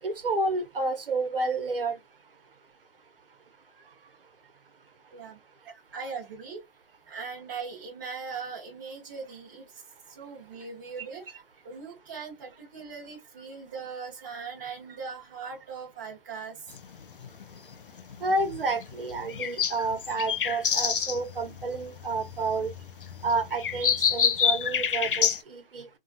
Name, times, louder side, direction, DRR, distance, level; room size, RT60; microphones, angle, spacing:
voice 1, 0.0-2.0 18.2-22.7 23.2-25.9, right 3 dB, 70° right, 0.8 m, -30 dB
voice 2, 5.9-6.6 7.1-9.8 10.1-16.8, right 5 dB, 20° right, 0.6 m, -40 dB
sound 1, 16.7-25.4, left 7 dB, 65° left, 0.5 m, -29 dB
2.9 x 2.3 x 2.5 m
hypercardioid pair, 160°, 29 cm